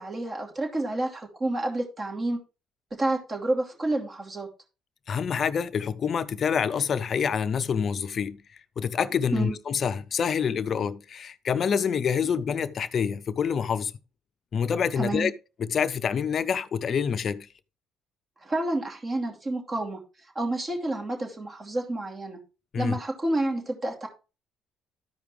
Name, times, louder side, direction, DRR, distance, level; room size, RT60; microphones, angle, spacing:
voice 1, 0.0-2.4 2.9-4.5 9.3-9.6 15.0-15.3 18.4-20.0 20.3-22.4 22.8-24.1, right 2 dB, 35° right, 2.7 m, -29 dB
voice 2, 5.1-8.4 8.8-13.9 14.5-15.3 15.6-17.5 22.7-23.0, left 7 dB, 50° left, 0.6 m, -27 dB
13.0 x 5.0 x 3.2 m
supercardioid pair, 65°, 0 cm